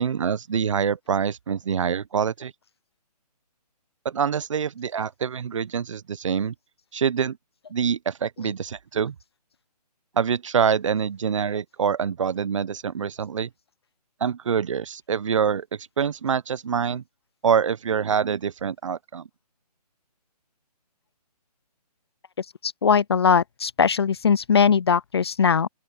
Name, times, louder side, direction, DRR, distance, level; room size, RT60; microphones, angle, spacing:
voice 1, 0.0-2.5 4.0-6.5 6.9-7.4 7.7-9.1 10.2-13.5 14.2-15.6 16.0-17.0 17.4-19.2, right 7 dB, 50° right, 0.8 m, -25 dB
voice 2, 22.4-25.7, left 6 dB, 40° left, 0.4 m, -21 dB
open air
hypercardioid pair, 160°, 21 cm